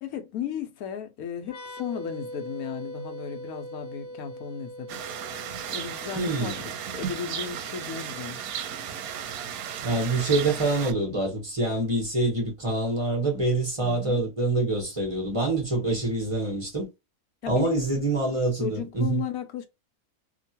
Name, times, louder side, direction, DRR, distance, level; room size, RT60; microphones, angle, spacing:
voice 1, 0.0-5.0 5.7-8.4 13.8-14.2 17.4-17.8 18.6-19.7, left 9 dB, 80° left, 1.1 m, -35 dB
sound 1, 1.4-8.9, equal, 50° left, 1.0 m, -42 dB
sound 2, 4.9-10.9, right 9 dB, 90° right, 1.1 m, -35 dB
voice 2, 6.2-6.6 9.8-16.9 17.5-19.2, right 2 dB, 25° right, 1.1 m, -26 dB
2.9 x 2.4 x 2.7 m
omnidirectional pair, 1.5 m